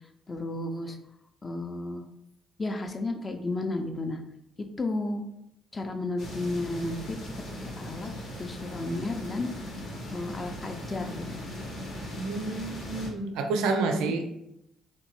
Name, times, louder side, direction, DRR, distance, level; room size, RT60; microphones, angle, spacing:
voice 1, 0.3-1.0 1.4-2.0 2.6-4.2 4.8-5.2 5.7-7.2 7.8-8.1 8.4-9.5 10.1-11.5 14.0-14.1, left 2 dB, 35° left, 5 dB, 0.4 m, -32 dB
sound 1, 6.2-13.1, left 1 dB, 65° left, 0.8 m, -39 dB
voice 2, 12.2-14.3, right 3 dB, 75° right, 5 dB, 0.4 m, -29 dB
2.9 x 2.2 x 2.9 m, 0.82 s
hypercardioid pair, 50°, 0 cm